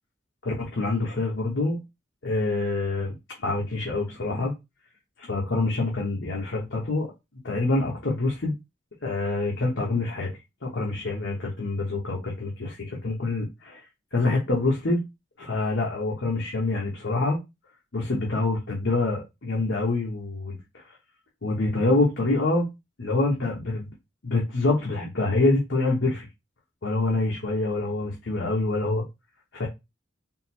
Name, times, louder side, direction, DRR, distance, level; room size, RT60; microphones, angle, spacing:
voice 1, 0.4-1.8 2.2-3.1 3.4-4.5 5.2-7.1 7.4-8.5 9.0-10.3 10.6-13.8 14.1-15.1 15.4-17.4 17.9-20.8 21.4-22.7 23.0-23.9 24.2-26.3 26.8-29.0 29.5-29.7, left 2 dB, 70° left, 1.0 m, -26 dB
3.7 x 2.0 x 4.3 m
head